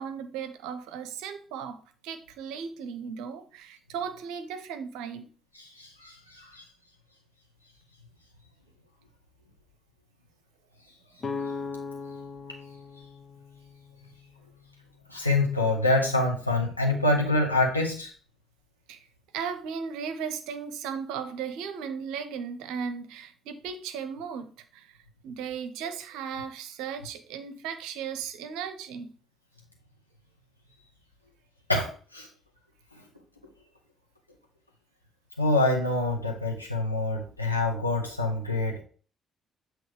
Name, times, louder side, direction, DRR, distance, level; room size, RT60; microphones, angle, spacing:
voice 1, 0.0-5.3 11.5-11.6 18.9-19.0 19.3-24.9 25.2-29.1, right 7 dB, 65° right, 0.6 m, -36 dB
voice 2, 5.8-6.6 15.1-18.1 31.7-32.3 35.4-38.8, left 2 dB, 90° left, 0.9 m, -26 dB
sound 1, 11.2-15.0, left 4 dB, 40° left, 0.7 m, -39 dB
7.7 x 3.0 x 4.9 m
figure-of-eight pair, 45°, 0 cm